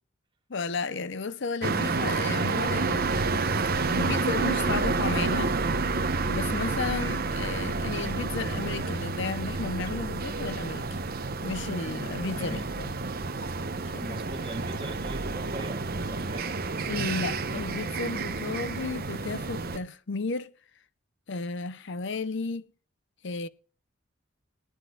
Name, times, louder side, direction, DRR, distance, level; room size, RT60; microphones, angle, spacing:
voice 1, 0.5-3.5 3.9-5.6 6.3-11.0 11.4-12.6 13.9-14.2 16.9-20.5 21.3-22.7 23.2-23.5, left 4 dB, 65° left, 0.7 m, -33 dB
sound 1, 1.6-19.8, right 3 dB, 50° right, 1.0 m, -29 dB
voice 2, 12.3-12.7 13.9-16.6, right 1 dB, 25° right, 2.2 m, -41 dB
19.5 x 10.0 x 2.4 m
head